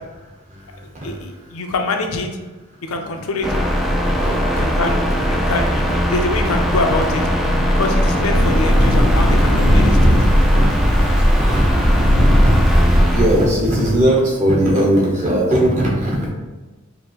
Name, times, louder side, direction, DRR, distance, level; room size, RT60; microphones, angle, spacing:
voice 1, 0.5-1.6 3.9-4.4 10.1-10.7 11.0-11.1 11.4-11.6 12.2-16.3, right 1 dB, 35° right, -4 dB, 1.0 m, -20 dB
voice 2, 1.0-2.3 2.8-3.6 4.6-5.8 6.1-7.2 7.7-10.2, left 2 dB, 85° left, 4 dB, 0.5 m, -24 dB
sound 1, 3.4-13.6, equal, ahead, 0.3 m, -17 dB
sound 2, 8.3-14.0, equal, 90° right, 1.5 m, -21 dB
5.0 x 2.6 x 3.0 m, 1.2 s
head